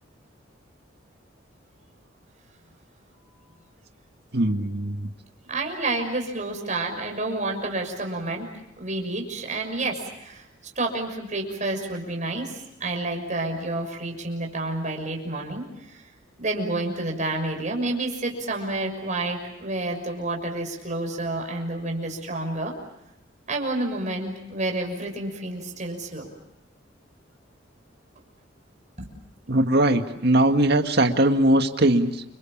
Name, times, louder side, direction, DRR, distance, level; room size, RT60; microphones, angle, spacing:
voice 1, 4.3-5.1 29.5-32.2, right 1 dB, 55° right, 6 dB, 1.9 m, -20 dB
voice 2, 5.5-8.5 8.8-10.4 10.8-12.5 12.8-16.0 16.4-22.7 23.5-26.3 29.0-29.1, right 2 dB, 40° right, 2 dB, 6.2 m, -29 dB
29.5 x 27.0 x 7.4 m, 0.84 s
head